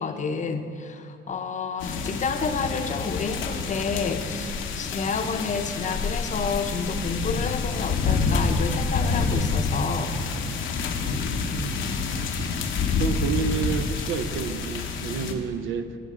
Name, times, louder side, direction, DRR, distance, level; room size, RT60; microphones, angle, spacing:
voice 1, 0.0-10.1, left 5 dB, 40° left, 7 dB, 0.7 m, -29 dB
sound 1, 1.8-15.3, left 4 dB, 75° left, 0.8 m, -28 dB
voice 2, 11.1-11.8 13.0-16.0, right 6 dB, 80° right, 11 dB, 0.5 m, -30 dB
10.0 x 6.0 x 4.9 m, 2.3 s
cardioid pair, 90°, 20 cm